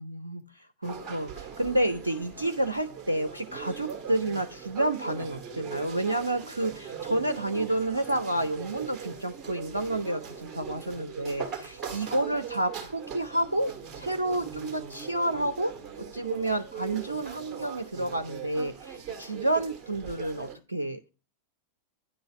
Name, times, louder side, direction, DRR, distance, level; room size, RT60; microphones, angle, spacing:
voice 1, 0.0-15.7 16.0-21.1, right 1 dB, 80° right, 13 dB, 0.4 m, -30 dB
sound 1, 0.8-20.6, right 7 dB, 30° right, 1.6 m, -40 dB
9.8 x 3.9 x 5.5 m, 0.33 s
figure-of-eight pair, 90°, 0 cm